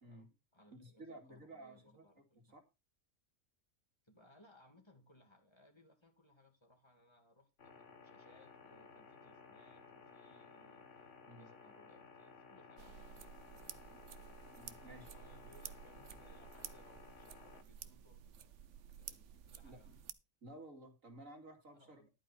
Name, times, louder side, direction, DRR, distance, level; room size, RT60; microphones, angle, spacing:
voice 1, 0.0-2.6 4.0-13.3 14.8-18.6 19.0-20.1 21.7-22.1, equal, 20° left, 2.5 m, -66 dB
voice 2, 0.7-2.0 2.5-2.6 11.2-11.5 14.4-15.1 19.6-20.0 20.4-22.1, right 1 dB, 90° right, 3.0 m, -54 dB
sound 1, 7.6-17.6, left 5 dB, 65° left, 1.7 m, -58 dB
sound 2, 12.8-20.1, right 8 dB, 70° right, 1.1 m, -53 dB
11.5 x 8.5 x 4.5 m
omnidirectional pair, 1.3 m